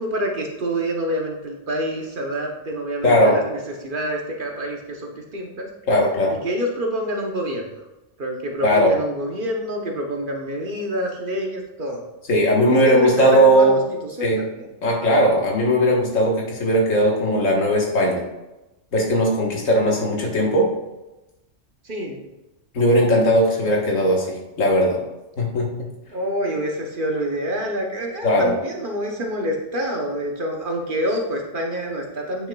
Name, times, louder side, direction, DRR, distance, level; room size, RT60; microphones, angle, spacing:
voice 1, 0.0-5.7 6.3-7.6 8.2-12.0 12.8-13.8 14.2-14.7 21.8-22.2 26.1-32.5, equal, 45° right, 1 dB, 0.9 m, -27 dB
voice 2, 3.0-3.4 5.9-6.4 8.6-9.0 12.3-13.7 14.2-14.4 14.8-18.2 18.9-20.7 22.7-25.0 25.4-25.7 28.2-28.5, equal, 80° left, -1 dB, 1.7 m, -18 dB
8.7 x 5.6 x 2.3 m, 1.0 s
omnidirectional pair, 1.3 m